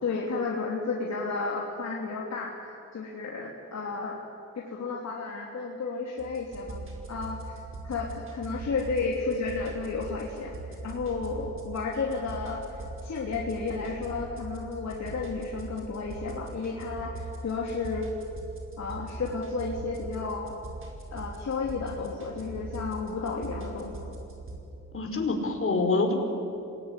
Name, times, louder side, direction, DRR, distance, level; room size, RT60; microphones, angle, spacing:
voice 1, 0.0-4.2 4.5-6.8 7.1-10.5 10.8-18.1 18.8-20.5 21.1-24.1, left 4 dB, 60° left, -2 dB, 3.2 m, -32 dB
sound 1, 6.2-24.6, right 2 dB, 40° right, 5.3 m, -41 dB
voice 2, 24.9-26.2, left 3 dB, 45° left, 3 dB, 4.6 m, -26 dB
27.0 x 20.0 x 9.9 m, 2.8 s
cardioid pair, 90°, 31 cm